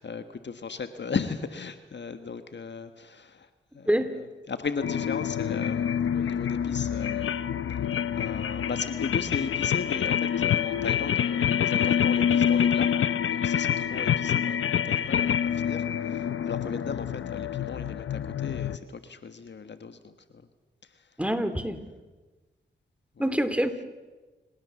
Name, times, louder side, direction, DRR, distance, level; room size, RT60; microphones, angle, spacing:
voice 1, 0.0-7.3 8.1-12.9 13.3-20.5 20.8-21.1 23.2-23.4, left 5 dB, 60° left, 9 dB, 1.5 m, -36 dB
sound 1, 4.8-18.8, left 8 dB, 75° left, 0.9 m, -26 dB
voice 2, 21.2-21.8 23.2-23.8, equal, 5° right, 9 dB, 3.1 m, -26 dB
27.5 x 18.0 x 7.2 m, 1.2 s
cardioid pair, 45°, 21 cm